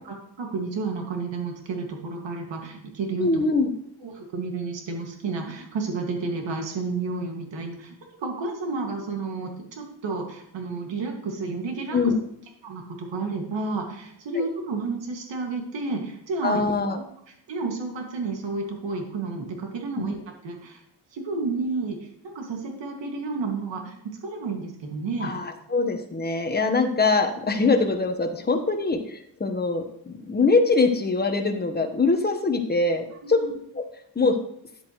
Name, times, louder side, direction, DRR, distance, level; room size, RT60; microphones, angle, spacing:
voice 1, 0.4-3.4 4.0-7.9 8.2-12.0 12.6-16.7 17.5-20.2 20.4-20.8 21.1-25.3 33.2-33.6, right 3 dB, 75° right, 2 dB, 2.1 m, -31 dB
voice 2, 3.2-3.7 11.9-12.1 14.3-14.4 16.4-17.0 20.0-20.1 25.2-33.4 33.7-33.8 34.1-34.4, left 3 dB, 20° left, 6 dB, 1.1 m, -23 dB
10.5 x 8.2 x 3.1 m, 0.74 s
cardioid pair, 90°, 45 cm